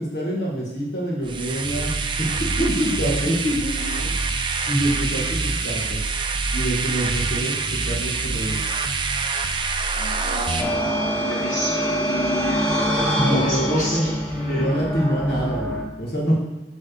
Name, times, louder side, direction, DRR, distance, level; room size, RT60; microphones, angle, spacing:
voice 1, 0.0-3.7 4.7-6.0 6.5-7.5 7.9-8.6 13.1-14.1 14.5-16.4, right 1 dB, 65° left, -4 dB, 1.7 m, -25 dB
sound 1, 1.2-10.6, right 4 dB, 30° right, 0.5 m, -25 dB
voice 2, 3.8-4.1 10.0-12.7 13.2-14.7, equal, 45° left, -7 dB, 2.7 m, -30 dB
sound 2, 10.6-15.8, equal, 5° left, 0.9 m, -24 dB
7.3 x 3.6 x 6.4 m, 1.2 s
head